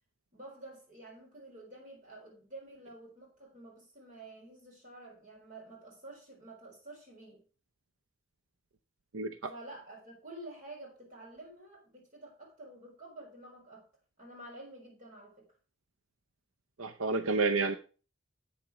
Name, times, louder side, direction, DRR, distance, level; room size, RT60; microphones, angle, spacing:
voice 1, 0.3-7.4 9.5-13.9 14.2-15.5, right 2 dB, 40° right, 4.2 m, -50 dB
voice 2, 9.1-9.5 16.8-17.8, right 4 dB, 80° right, 0.6 m, -30 dB
8.3 x 6.9 x 4.6 m
head